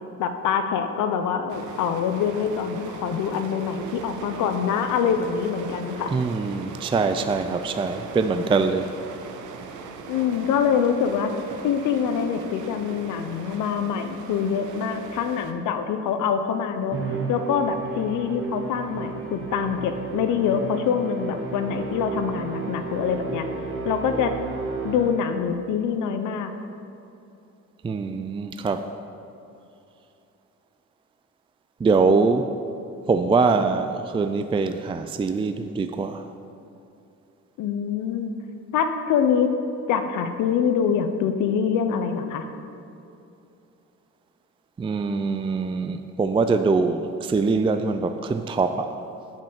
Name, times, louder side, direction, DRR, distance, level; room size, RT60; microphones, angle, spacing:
voice 1, 0.2-6.1 10.1-11.3 11.6-17.0 17.3-23.5 23.8-24.3 24.8-26.5 37.6-38.3 38.7-39.5 39.9-42.4, left 7 dB, 85° left, 8 dB, 0.7 m, -25 dB
sound 1, 1.5-15.5, right 4 dB, 80° right, 0.8 m, -40 dB
voice 2, 6.1-8.9 27.8-28.9 31.8-32.5 33.1-36.3 44.8-48.9, right 4 dB, 20° right, 8 dB, 0.3 m, -23 dB
Musical instrument, 16.9-25.5, right 5 dB, 45° right, 1.1 m, -33 dB
7.4 x 5.4 x 7.1 m, 2.8 s
cardioid pair, 90°, 30 cm